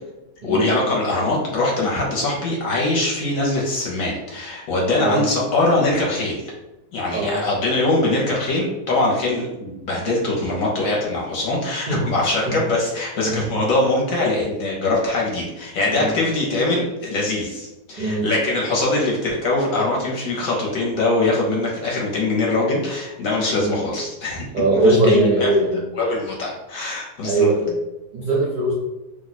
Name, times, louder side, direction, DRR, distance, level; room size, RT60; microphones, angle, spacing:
voice 1, 0.4-6.5 6.9-24.4 24.7-25.5 26.0-27.5, left 2 dB, 60° left, -3 dB, 1.0 m, -22 dB
voice 2, 4.9-5.2 7.1-7.4 11.9-12.0 12.5-12.6 13.2-13.3 15.9-16.1 18.0-18.3 23.5-23.8 24.5-25.8 27.2-27.7 28.1-28.7, right 2 dB, 60° right, -6 dB, 0.5 m, -20 dB
2.8 x 2.2 x 4.0 m, 1.0 s
omnidirectional pair, 1.8 m